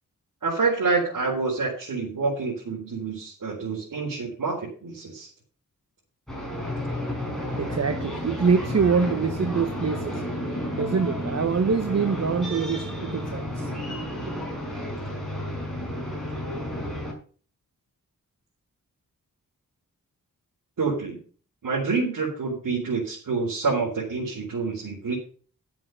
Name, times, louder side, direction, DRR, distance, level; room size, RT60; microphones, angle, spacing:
voice 1, 0.4-5.3 20.8-21.2 21.6-25.2, right 4 dB, 70° right, 4.1 m, -27 dB
sound 1, 6.3-17.1, left 1 dB, ahead, 5.1 m, -32 dB
voice 2, 7.2-14.5, right 5 dB, 50° right, 1.0 m, -26 dB
11.0 x 7.6 x 5.8 m
wide cardioid pair, 90°, 33 cm